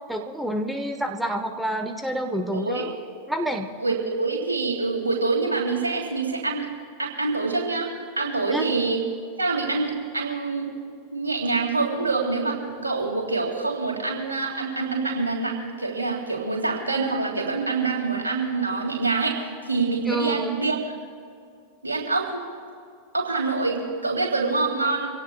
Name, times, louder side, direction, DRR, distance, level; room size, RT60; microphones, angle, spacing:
voice 1, 0.1-2.9 3.3-3.7 8.5-8.6 20.1-20.6, right 1 dB, ahead, 4 dB, 1.1 m, -28 dB
voice 2, 2.3-2.9 3.8-6.7 7.0-9.0 9.4-10.7 11.1-20.8 21.8-22.4 23.1-25.1, right 3 dB, 75° right, -1 dB, 3.4 m, -26 dB
26.0 x 17.5 x 2.4 m, 2.3 s
figure-of-eight pair, 90°, 0 cm